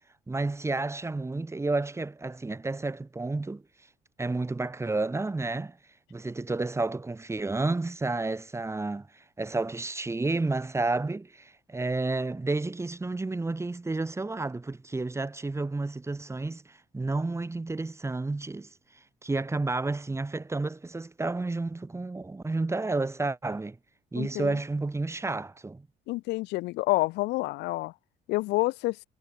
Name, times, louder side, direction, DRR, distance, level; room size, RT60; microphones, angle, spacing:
voice 1, 0.3-3.6 4.2-5.8 6.1-18.7 19.2-23.8 24.1-25.9, right 3 dB, 15° right, 6.6 m, -31 dB
voice 2, 24.2-24.5 26.1-27.9 28.3-29.0, left 20 dB, 90° left, 2.7 m, -28 dB
cardioid pair, 110°, 17 cm